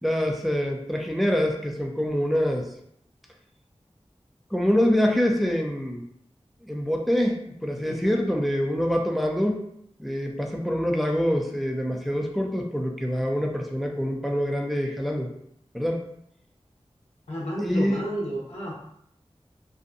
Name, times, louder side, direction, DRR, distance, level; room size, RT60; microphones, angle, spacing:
voice 1, 0.0-2.7 4.5-6.0 6.6-9.6 10.0-15.3 15.7-16.0 17.6-18.0, equal, ahead, 1 dB, 0.4 m, -25 dB
voice 2, 7.9-8.2 17.3-18.7, equal, 70° left, -5 dB, 0.6 m, -31 dB
2.6 x 2.2 x 2.5 m, 0.73 s
wide cardioid pair, 60°, 11 cm